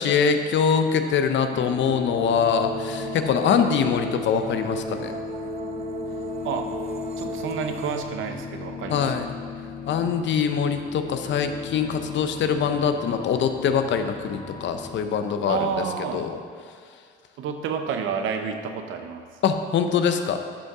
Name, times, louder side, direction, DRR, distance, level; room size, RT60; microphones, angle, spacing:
voice 1, 0.0-5.1 8.9-9.3 9.9-15.6 16.1-16.3 19.4-20.4, left 7 dB, 70° left, 7 dB, 0.7 m, -23 dB
sound 1, 1.5-15.1, left 6 dB, 45° left, 0.8 m, -36 dB
sound 2, 2.1-8.0, right 4 dB, 30° right, 0.6 m, -36 dB
voice 2, 7.2-9.1 15.5-16.3 17.4-19.3, right 6 dB, 85° right, 6 dB, 0.8 m, -30 dB
13.0 x 5.3 x 3.7 m, 2.1 s
cardioid pair, 90°, 20 cm